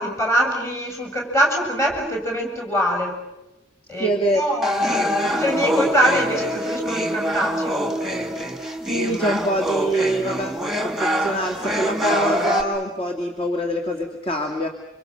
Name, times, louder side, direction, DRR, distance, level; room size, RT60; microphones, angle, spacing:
voice 1, 0.0-3.2 3.9-4.8 5.3-7.8, equal, 15° left, 1 dB, 7.7 m, -23 dB
voice 2, 4.0-4.5 8.9-14.7, right 1 dB, 30° left, 3 dB, 2.6 m, -24 dB
sound 1, 4.6-12.6, equal, ahead, 3.0 m, -24 dB
29.0 x 27.0 x 6.7 m, 0.99 s
head